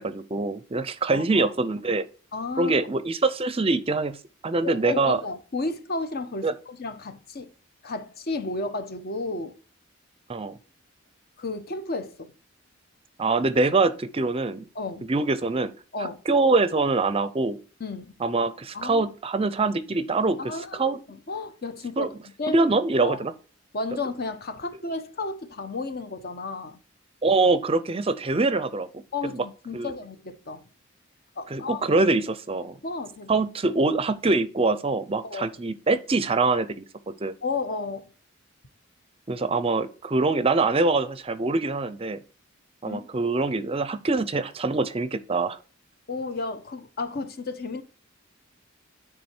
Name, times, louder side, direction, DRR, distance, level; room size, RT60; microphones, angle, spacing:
voice 1, 0.0-2.1 2.6-4.2 4.4-5.2 6.4-6.5 10.3-10.5 13.2-14.6 15.1-15.7 16.0-17.6 18.2-21.0 22.0-22.1 22.5-23.3 27.2-29.0 29.3-29.4 29.7-29.9 31.5-32.8 33.3-37.3 39.3-42.2 42.8-45.6, right 3 dB, 30° right, 0.5 m, -24 dB
voice 2, 1.1-1.5 2.3-2.7 4.6-7.5 7.8-9.5 11.4-12.3 14.7-15.1 15.9-16.2 17.8-18.1 18.7-19.0 20.4-22.1 22.4-22.6 23.0-23.2 23.7-26.8 29.1-30.7 31.4-31.8 32.8-33.4 35.2-35.5 37.4-38.1 42.8-43.1 46.1-47.8, left 3 dB, 50° left, 0.9 m, -32 dB
9.7 x 3.6 x 4.4 m
head